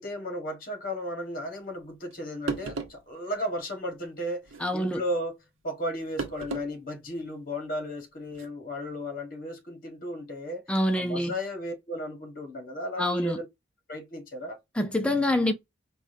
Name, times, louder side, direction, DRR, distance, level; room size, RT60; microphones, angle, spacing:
voice 1, 0.0-4.5 4.7-5.4 5.6-10.6 10.9-13.5 13.9-14.6, equal, 45° left, 1.2 m, -34 dB
sound 1, 2.1-2.2 2.5-3.0 4.4-4.7 6.2-6.7 7.1-7.2 8.3-8.5, right 3 dB, 85° right, 0.8 m, -34 dB
voice 2, 4.6-5.0 10.7-11.3 13.0-13.4 14.8-15.5, left 1 dB, 5° left, 0.5 m, -26 dB
4.8 x 2.3 x 2.5 m
head